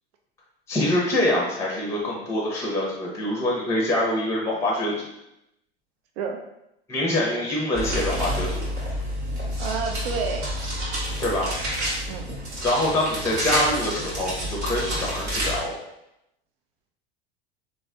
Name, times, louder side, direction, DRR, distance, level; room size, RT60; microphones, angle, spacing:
voice 1, 0.7-5.1 6.9-8.6 11.2-11.5 12.6-15.8, left 1 dB, 10° left, -3 dB, 0.7 m, -25 dB
sound 1, 7.7-15.6, equal, 50° right, 1.4 m, -29 dB
voice 2, 9.6-10.5 12.1-12.3, right 5 dB, 70° right, 3 dB, 0.5 m, -30 dB
3.1 x 2.5 x 2.4 m, 0.84 s
hypercardioid pair, 85°, 31 cm